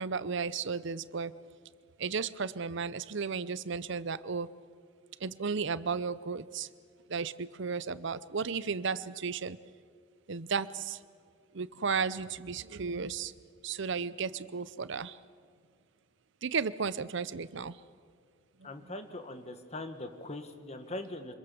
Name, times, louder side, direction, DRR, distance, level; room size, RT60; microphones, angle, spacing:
voice 1, 0.0-1.3 2.0-4.5 5.2-6.7 7.1-9.6 10.3-11.0 11.5-13.3 13.6-15.2 16.4-17.8 18.6-18.9, right 5 dB, 65° right, 16 dB, 0.7 m, -34 dB
voice 2, 18.6-21.3, left 2 dB, 35° left, 8 dB, 1.6 m, -41 dB
26.0 x 21.5 x 7.0 m, 2.1 s
head